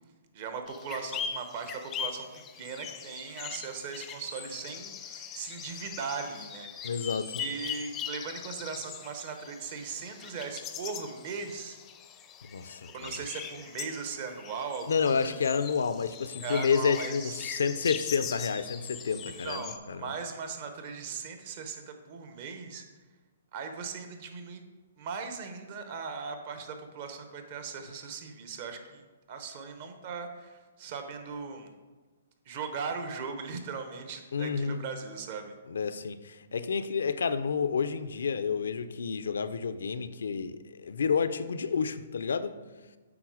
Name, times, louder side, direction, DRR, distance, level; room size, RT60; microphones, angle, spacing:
voice 1, 0.3-2.3 2.5-7.0 7.4-11.8 12.9-15.3 16.4-17.4 19.2-22.8 23.5-24.6 25.0-29.0 29.3-31.7 32.5-35.5, right 5 dB, 45° right, 1.0 m, -39 dB
sound 1, 0.7-19.8, left 8 dB, 20° left, 0.5 m, -41 dB
voice 2, 6.8-7.4 12.5-13.1 14.9-20.1 34.3-34.8 35.7-42.6, left 6 dB, 80° left, 0.5 m, -30 dB
8.7 x 3.8 x 4.9 m
hypercardioid pair, 150°, 0 cm